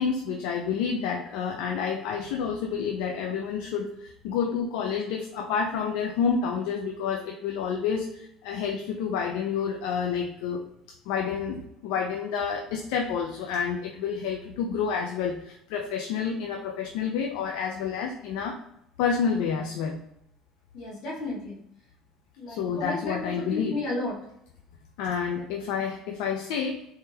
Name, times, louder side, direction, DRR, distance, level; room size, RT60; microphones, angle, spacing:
voice 1, 0.0-10.6 11.1-18.6 19.0-20.0 22.5-23.7 25.0-26.8, left 6 dB, 80° left, 2 dB, 0.4 m, -29 dB
voice 2, 20.7-21.6 22.4-24.1 25.3-25.4, left 2 dB, 60° left, -5 dB, 1.4 m, -33 dB
3.6 x 3.3 x 2.8 m, 0.78 s
cardioid pair, 160°, 0 cm